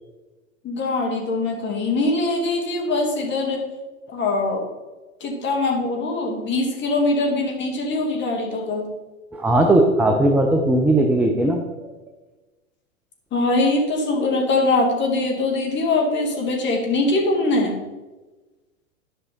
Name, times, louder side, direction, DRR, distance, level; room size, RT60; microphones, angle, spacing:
voice 1, 0.6-3.6 4.1-4.6 5.2-8.9 13.3-17.8, left 2 dB, 25° left, 1 dB, 2.2 m, -22 dB
voice 2, 9.3-11.6, right 1 dB, 5° right, 2 dB, 0.6 m, -18 dB
11.0 x 5.6 x 3.9 m, 1.2 s
hypercardioid pair, 110°, 41 cm